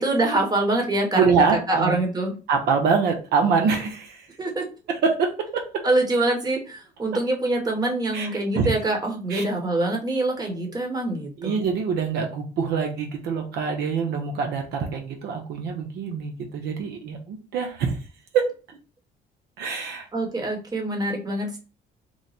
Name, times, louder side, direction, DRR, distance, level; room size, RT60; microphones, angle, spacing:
voice 1, 0.0-1.2 1.7-2.3 4.4-4.6 5.8-11.6 20.1-21.6, right 2 dB, 20° right, 1 dB, 1.1 m, -24 dB
voice 2, 1.1-2.0 2.5-4.3 4.9-5.6 8.1-8.3 8.5-8.7 9.3-9.4 11.4-18.0 18.3-18.4 19.6-20.1, right 5 dB, 75° right, 3 dB, 0.7 m, -24 dB
3.1 x 2.1 x 3.9 m, 0.35 s
cardioid pair, 110°, 17 cm